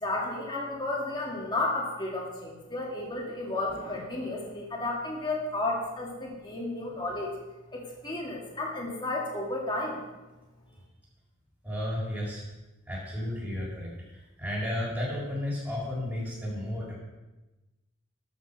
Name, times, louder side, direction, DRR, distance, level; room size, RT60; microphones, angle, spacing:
voice 1, 0.0-7.3 7.7-10.0, left 2 dB, 20° left, -2 dB, 2.3 m, -32 dB
voice 2, 11.6-12.5 12.9-16.9, left 1 dB, 10° right, -6 dB, 4.0 m, -33 dB
13.0 x 5.7 x 6.8 m, 1.1 s
head